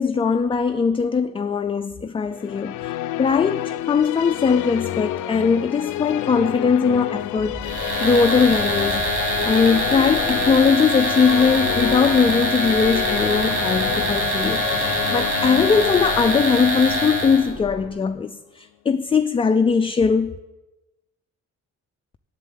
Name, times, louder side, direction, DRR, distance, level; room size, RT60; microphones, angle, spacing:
voice 1, 0.0-20.4, left 5 dB, 20° left, 0.3 m, -20 dB
sound 1, 2.3-18.4, left 14 dB, 85° left, 0.5 m, -30 dB
sound 2, 7.4-17.9, right 1 dB, 25° right, 2.4 m, -39 dB
sound 3, 7.6-17.5, equal, 45° right, 2.3 m, -24 dB
7.5 x 7.4 x 8.0 m
cardioid pair, 90°, 30 cm